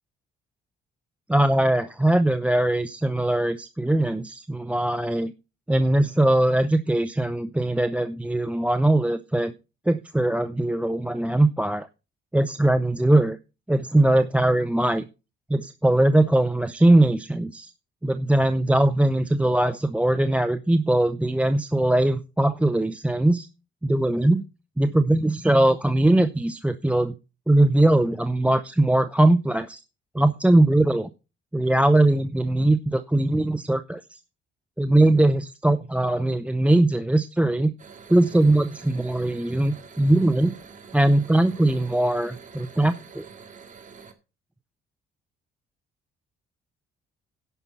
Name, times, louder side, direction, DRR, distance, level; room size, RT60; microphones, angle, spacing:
voice 1, 1.3-5.3 5.7-9.5 9.9-11.9 12.3-13.4 13.7-15.1 15.5-17.7 18.0-23.5 23.8-24.4 24.8-27.1 27.5-29.8 30.1-31.1 31.5-34.2 34.8-37.7 38.1-40.5 40.9-43.2, right 1 dB, 5° right, 13 dB, 0.6 m, -21 dB
sound 1, 37.8-44.1, right 6 dB, 40° right, 2.0 m, -46 dB
11.0 x 5.9 x 5.6 m, 0.30 s
cardioid pair, 90°, 20 cm